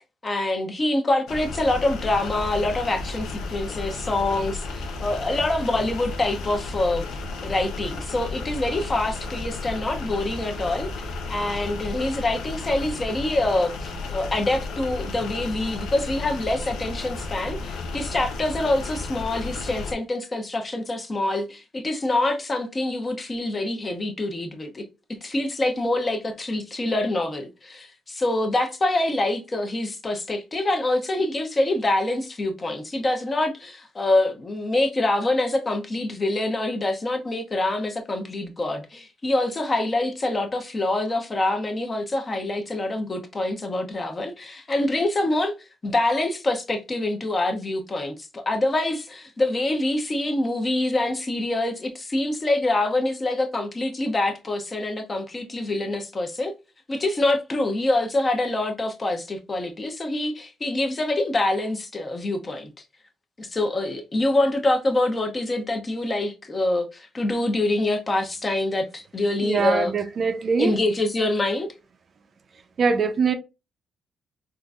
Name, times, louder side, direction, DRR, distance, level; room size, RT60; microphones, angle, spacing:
voice 1, 0.2-7.0 7.4-24.8 25.2-45.6 45.8-56.5 56.9-62.7 63.4-69.9 70.6-71.7, left 2 dB, 30° left, 0.8 m, -25 dB
sound 1, 1.3-19.9, left 3 dB, 85° left, 0.6 m, -33 dB
voice 2, 69.4-70.7 72.8-73.3, right 5 dB, 50° right, 0.5 m, -23 dB
3.7 x 2.6 x 2.3 m
cardioid pair, 90°, 0 cm